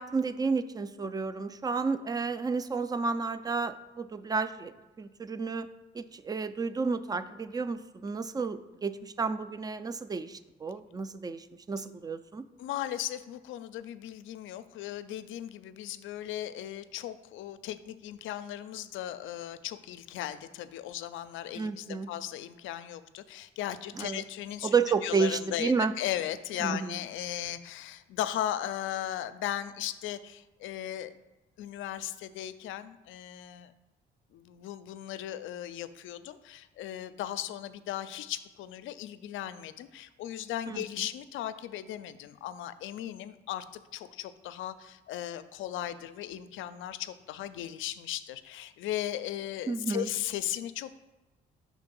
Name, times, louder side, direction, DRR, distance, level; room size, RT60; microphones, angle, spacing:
voice 1, 0.0-5.7 5.9-12.5 21.5-22.1 24.0-24.2 24.6-26.0 26.6-27.0 40.7-40.8 49.7-50.1, right 4 dB, 20° right, 13 dB, 0.3 m, -31 dB
voice 2, 12.6-24.7 25.0-31.1 31.6-33.7 34.3-43.7 43.9-50.9, left 12 dB, 80° left, 13 dB, 0.4 m, -37 dB
5.6 x 3.6 x 5.3 m, 1.1 s
cardioid pair, 90°, 20 cm